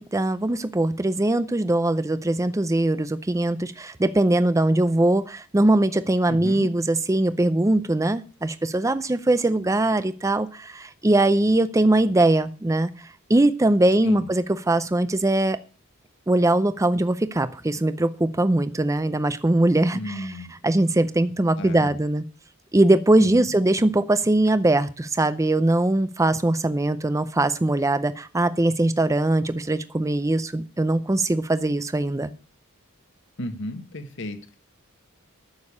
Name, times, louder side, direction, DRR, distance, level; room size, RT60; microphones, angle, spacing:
voice 1, 0.0-15.6 16.3-20.3 20.6-22.2 22.7-32.3, right 2 dB, 15° right, 13 dB, 0.5 m, -21 dB
voice 2, 6.3-6.7 14.0-14.3 19.9-20.5 21.6-21.9 23.2-23.5 33.4-34.6, left 1 dB, 60° left, 8 dB, 1.6 m, -34 dB
9.6 x 6.9 x 8.4 m, 0.38 s
head